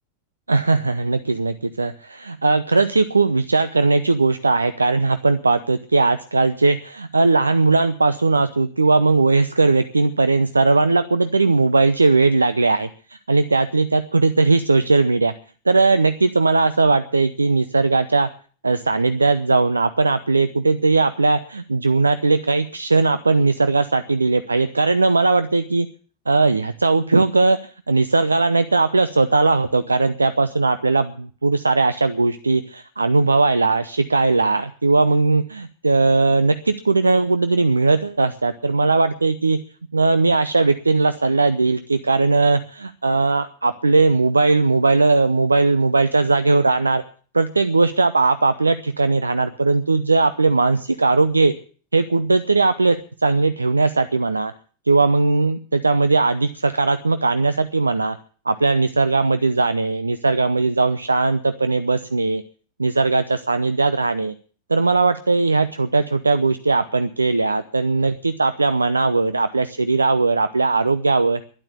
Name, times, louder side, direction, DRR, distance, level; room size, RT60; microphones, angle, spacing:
voice 1, 0.5-15.3 15.7-18.3 18.6-25.9 26.3-39.6 39.9-47.0 47.3-51.5 51.9-54.5 54.9-58.2 58.5-62.4 62.8-64.3 64.7-71.4, right 3 dB, 80° right, 12 dB, 0.8 m, -18 dB
12.5 x 11.5 x 8.3 m, 0.43 s
figure-of-eight pair, 90°, 0 cm